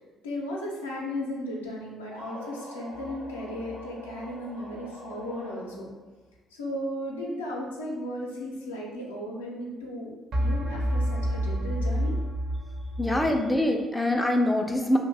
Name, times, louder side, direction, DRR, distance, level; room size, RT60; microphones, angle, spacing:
voice 1, 0.2-5.9 6.5-12.1 13.0-13.1, left 1 dB, 80° left, -4 dB, 0.5 m, -35 dB
sound 1, 2.1-6.0, right 1 dB, 85° right, 0.9 m, -44 dB
sound 2, 2.9-3.8 10.3-13.3, equal, 50° right, 0.6 m, -29 dB
voice 2, 13.0-15.0, left 1 dB, 10° left, 3 dB, 0.3 m, -24 dB
2.5 x 2.2 x 3.2 m, 1.2 s
figure-of-eight pair, 45°, 0 cm